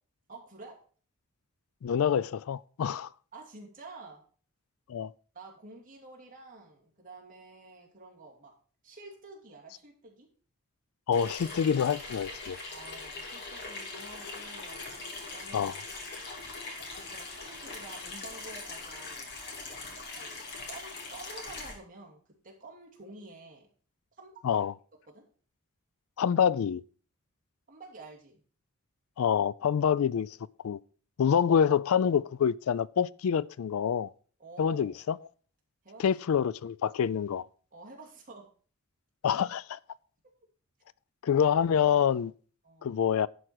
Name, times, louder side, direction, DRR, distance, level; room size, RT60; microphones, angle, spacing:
voice 1, 0.3-0.8 3.3-4.2 5.3-8.5 8.8-10.3 12.7-15.7 16.9-19.3 20.2-22.2 22.4-23.7 24.1-24.7 25.1-25.2 27.7-28.4 31.2-31.4 34.4-35.0 35.8-36.0 37.7-38.5 42.6-43.0, right 3 dB, 35° right, 2.8 m, -49 dB
voice 2, 1.8-3.1 4.9-5.1 11.1-12.6 15.5-15.7 24.4-24.7 26.2-26.8 29.2-30.4 30.6-30.8 31.2-34.1 34.6-35.2 36.0-37.5 39.2-39.8 41.2-42.3 42.8-43.3, left 8 dB, 70° left, 0.3 m, -26 dB
Water tap faucet / Sink (filling or washing), 11.1-21.8, left 3 dB, 50° left, 2.4 m, -41 dB
11.0 x 4.9 x 6.1 m
head